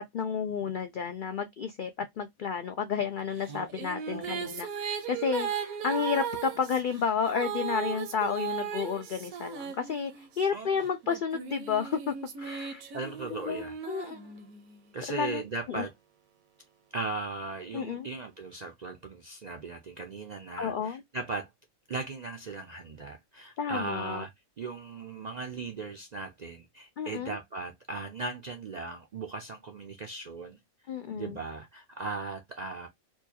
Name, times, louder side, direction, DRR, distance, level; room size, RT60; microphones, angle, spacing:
voice 1, 0.0-12.8 13.3-14.2 15.1-15.9 17.7-18.1 20.6-21.0 23.6-24.2 27.0-27.4 30.9-31.4, left 6 dB, 85° left, 0.4 m, -31 dB
sound 1, 3.4-10.4 11.0-14.8, right 7 dB, 85° right, 1.3 m, -37 dB
voice 2, 4.1-4.5 10.5-10.9 12.9-13.8 14.9-15.9 16.9-21.5 21.9-24.3 24.6-30.6 31.1-32.9, right 3 dB, 65° right, 0.4 m, -38 dB
4.4 x 2.3 x 2.7 m
omnidirectional pair, 1.4 m